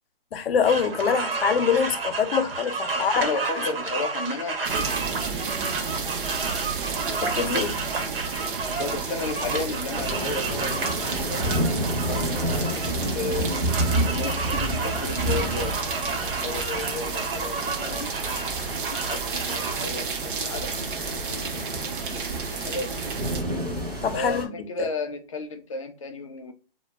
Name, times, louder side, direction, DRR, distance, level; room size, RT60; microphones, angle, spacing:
voice 1, 0.3-3.2 7.2-7.7 24.0-24.5, left 6 dB, 85° left, 0.6 m, -24 dB
sound 1, 0.6-19.8, right 4 dB, 80° right, 0.9 m, -32 dB
voice 2, 2.9-5.0 7.3-7.7 8.7-13.5 14.1-15.8 16.2-18.4 18.9-21.1 22.1-23.1 24.1-26.5, left 3 dB, 35° left, 0.4 m, -34 dB
sound 2, 4.6-23.4, right 5 dB, 60° right, 0.6 m, -32 dB
sound 3, 9.9-24.4, equal, 20° right, 0.6 m, -30 dB
2.3 x 2.1 x 3.3 m
hypercardioid pair, 165°, 29 cm